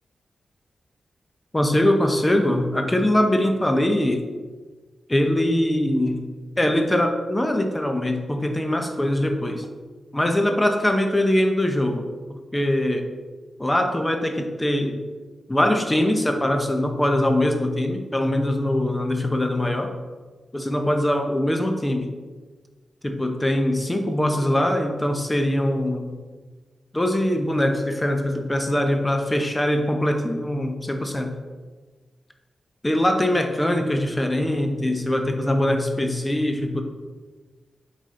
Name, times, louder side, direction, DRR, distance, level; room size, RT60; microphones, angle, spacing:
voice 1, 1.5-4.3 5.1-9.7 10.1-13.1 13.6-15.0 15.5-19.9 20.5-22.1 23.0-26.2 26.9-31.4 32.8-36.8, left 1 dB, 15° left, 4 dB, 0.8 m, -22 dB
6.3 x 4.2 x 3.8 m, 1.4 s
cardioid pair, 60°, 0 cm